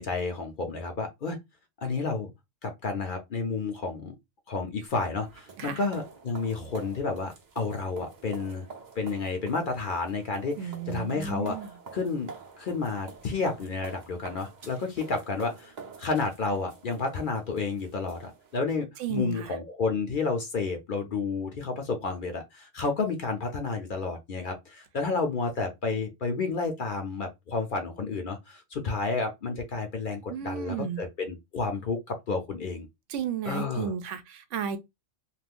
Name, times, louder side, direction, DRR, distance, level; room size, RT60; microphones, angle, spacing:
voice 1, 0.0-1.4 1.8-2.3 2.6-4.1 4.5-8.7 9.0-11.6 11.9-12.3 12.6-15.7 16.0-32.9 33.5-33.9, left 4 dB, 55° left, 0.6 m, -31 dB
sound 1, 4.9-18.6, right 5 dB, 45° right, 0.7 m, -47 dB
voice 2, 10.6-11.7 19.0-19.6 30.3-31.0 33.1-34.8, right 7 dB, 85° right, 0.9 m, -33 dB
2.5 x 2.4 x 3.5 m
omnidirectional pair, 1.2 m